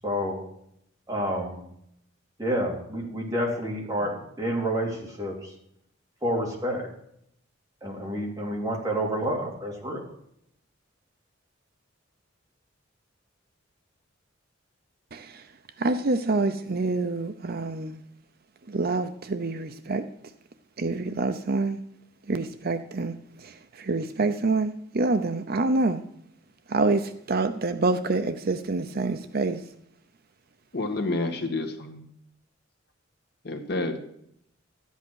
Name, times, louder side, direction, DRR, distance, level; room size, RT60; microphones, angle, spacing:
voice 1, 0.0-0.4 1.1-1.6 2.4-5.5 6.2-6.9 7.8-10.0, equal, 20° right, -2 dB, 3.3 m, -29 dB
voice 2, 15.1-15.4 15.8-18.0 18.7-20.0 20.8-21.8 22.3-23.1 23.4-26.0 26.7-29.6, right 3 dB, 50° right, 9 dB, 0.6 m, -26 dB
voice 3, 30.7-32.1 33.4-34.0, left 2 dB, 55° left, 5 dB, 1.7 m, -29 dB
13.0 x 8.3 x 6.4 m, 0.73 s
head